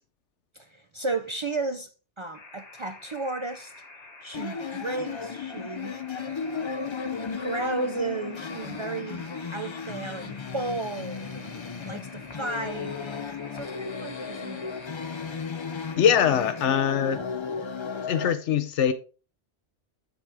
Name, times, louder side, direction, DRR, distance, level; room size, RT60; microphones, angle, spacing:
voice 1, 0.5-1.9 2.2-3.7 4.2-6.0 7.4-11.6 11.8-13.3 13.5-14.9, right 3 dB, 50° right, 0.3 m, -34 dB
sound 1, 2.3-16.7, left 3 dB, 70° left, 2.4 m, -48 dB
sound 2, 4.3-18.3, left 5 dB, 45° left, 0.3 m, -35 dB
voice 2, 16.0-17.2 18.1-18.9, left 8 dB, 85° left, 0.9 m, -22 dB
7.4 x 7.2 x 3.4 m
omnidirectional pair, 1.2 m